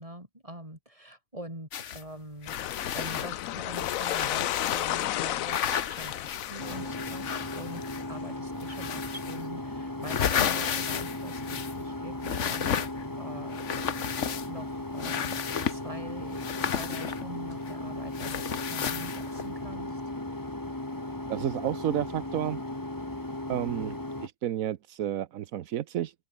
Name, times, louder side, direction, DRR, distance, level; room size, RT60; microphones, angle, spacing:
voice 1, 0.0-13.6 14.1-18.4 18.7-20.0, right 1 dB, 25° right, 8.2 m, -44 dB
sound 1, 1.7-2.0 2.4-5.1 5.5-8.2 8.6-9.5 9.8-11.9 12.2-13.1 13.5-14.7 15.0-15.8 16.3-17.7 18.1-19.5, left 8 dB, 60° left, 1.3 m, -33 dB
sound 2, 2.5-8.2, left 14 dB, 85° left, 1.0 m, -33 dB
sound 3, 6.6-24.3, left 1 dB, 15° left, 2.0 m, -36 dB
voice 2, 21.3-22.6 23.5-26.1, right 11 dB, 85° right, 1.2 m, -31 dB
open air
omnidirectional pair, 1.4 m